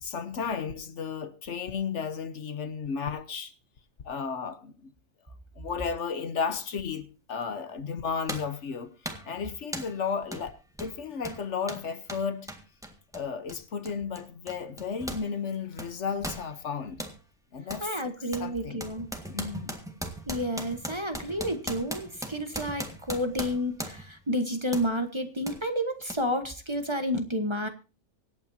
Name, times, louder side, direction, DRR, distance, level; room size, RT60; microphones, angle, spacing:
voice 1, 0.0-3.5 4.0-4.9 5.6-8.9 9.2-12.5 13.1-17.0 17.5-17.9 18.4-18.8 19.3-19.8, left 6 dB, 60° left, 1.3 m, -33 dB
sound 1, 7.4-7.5 8.3-8.6 9.0-9.3 9.7-10.0 10.3-10.5 10.7-15.3 15.5-17.2 17.7-17.9 18.3-24.2 24.7-24.9 25.5-25.6 26.1-26.2, equal, ahead, 1.7 m, -38 dB
voice 2, 17.8-19.1 20.3-27.7, equal, 20° right, 1.2 m, -30 dB
25.0 x 8.9 x 2.7 m
omnidirectional pair, 1.4 m